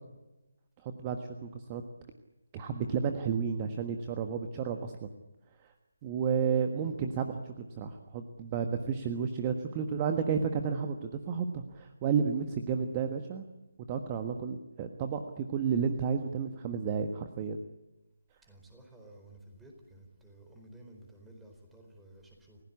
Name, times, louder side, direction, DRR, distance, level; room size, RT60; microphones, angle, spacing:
voice 1, 0.8-1.8 2.5-5.1 6.0-13.4 13.9-17.6, right 6 dB, 20° right, 6 dB, 1.5 m, -32 dB
voice 2, 18.5-22.6, right 1 dB, 5° right, 2 dB, 4.4 m, -54 dB
29.5 x 16.5 x 8.6 m, 1.0 s
figure-of-eight pair, 150°, 0 cm